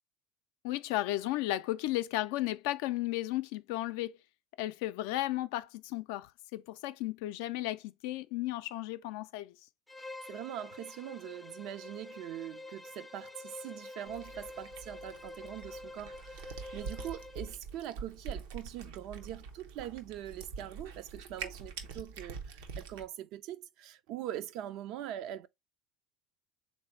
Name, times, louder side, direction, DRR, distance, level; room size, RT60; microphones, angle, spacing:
voice 1, 0.6-4.2 4.6-9.5, left 16 dB, 70° left, 0.4 m, -34 dB
Bowed string instrument, 9.9-17.5, left 2 dB, 10° left, 0.4 m, -47 dB
voice 2, 10.3-25.5, right 12 dB, 60° right, 0.5 m, -42 dB
Cat, 14.1-23.0, right 5 dB, 80° right, 0.8 m, -45 dB
3.4 x 2.7 x 4.4 m
hypercardioid pair, 90°, 0 cm